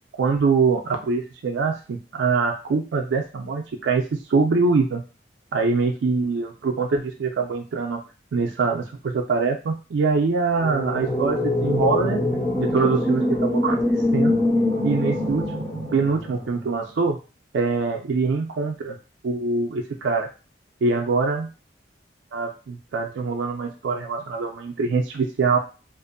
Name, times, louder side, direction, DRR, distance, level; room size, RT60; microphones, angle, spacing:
voice 1, 0.2-5.0 5.5-8.0 8.3-12.2 12.6-13.8 14.1-14.4 14.8-15.6 15.9-17.2 17.5-19.0 19.2-20.3 20.8-21.5 22.3-25.6, right 4 dB, 80° right, 2 dB, 0.4 m, -23 dB
sound 1, 10.6-16.7, left 1 dB, 20° left, 1.1 m, -24 dB
2.6 x 2.4 x 2.5 m, 0.33 s
head